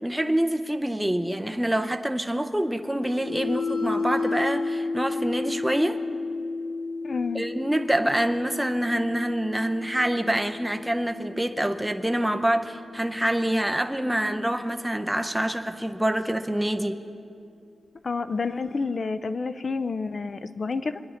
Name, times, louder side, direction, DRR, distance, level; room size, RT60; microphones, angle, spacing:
voice 1, 0.0-6.0 7.3-17.0, right 1 dB, 5° right, 6 dB, 0.6 m, -26 dB
sound 1, 3.0-13.0, left 3 dB, 80° left, 0.9 m, -33 dB
voice 2, 7.0-7.5 18.0-21.0, left 4 dB, 40° left, 12 dB, 0.5 m, -29 dB
24.5 x 10.5 x 4.3 m, 2.5 s
wide cardioid pair, 170°, 0 cm